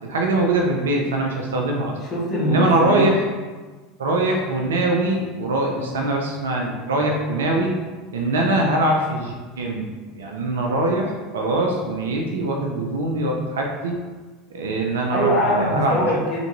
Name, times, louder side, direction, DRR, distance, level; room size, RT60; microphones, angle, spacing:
voice 1, 0.0-2.0 2.5-3.2 4.0-7.7 8.1-9.9 10.1-14.0 14.5-16.0, right 2 dB, 85° right, 1 dB, 0.4 m, -22 dB
voice 2, 2.0-3.1 5.7-6.0 6.9-7.2 15.1-16.4, equal, 40° left, -5 dB, 1.2 m, -23 dB
3.2 x 2.5 x 2.9 m, 1.3 s
hypercardioid pair, 85°, 0 cm